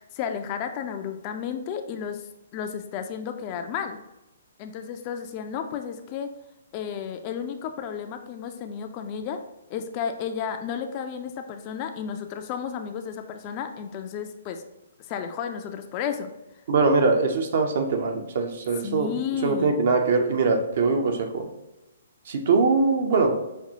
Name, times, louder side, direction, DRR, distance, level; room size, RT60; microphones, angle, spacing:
voice 1, 0.0-2.3 2.5-4.0 4.6-6.3 6.7-9.4 9.7-14.6 15.1-16.3 18.8-19.8, left 7 dB, 30° left, 6 dB, 0.3 m, -32 dB
voice 2, 16.7-19.1 19.4-21.5 22.3-23.4, right 4 dB, 50° right, 5 dB, 0.6 m, -22 dB
5.2 x 2.3 x 2.7 m, 0.97 s
figure-of-eight pair, 125°, 0 cm